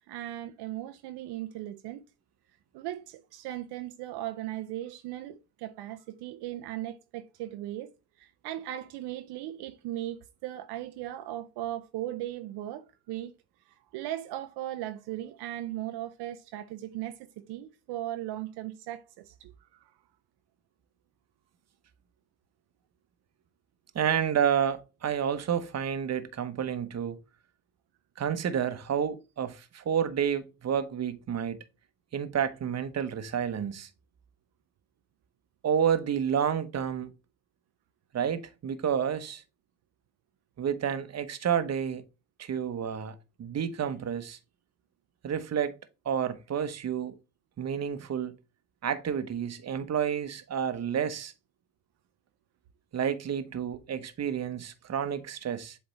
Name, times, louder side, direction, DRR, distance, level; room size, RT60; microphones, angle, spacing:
voice 1, 0.1-2.0 2.7-7.9 8.2-13.3 13.9-19.9, right 13 dB, 75° right, 0.6 m, -38 dB
voice 2, 23.9-27.1 28.2-31.6 32.1-33.9 35.6-37.1 38.1-39.4 40.6-42.0 42.4-44.4 45.2-45.7 46.0-47.1 47.6-48.3 48.8-51.3 52.9-55.8, right 8 dB, 40° right, 1.0 m, -30 dB
7.8 x 3.4 x 4.1 m
supercardioid pair, 70°, 41 cm